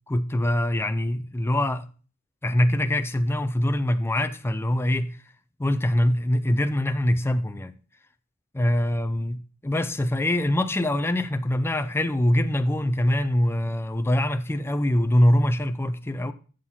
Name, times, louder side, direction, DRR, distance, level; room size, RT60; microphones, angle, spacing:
voice 1, 0.1-1.9 2.4-5.1 5.6-7.7 8.5-16.3, left 1 dB, 10° left, 0.4 m, -23 dB
7.4 x 6.4 x 5.5 m
head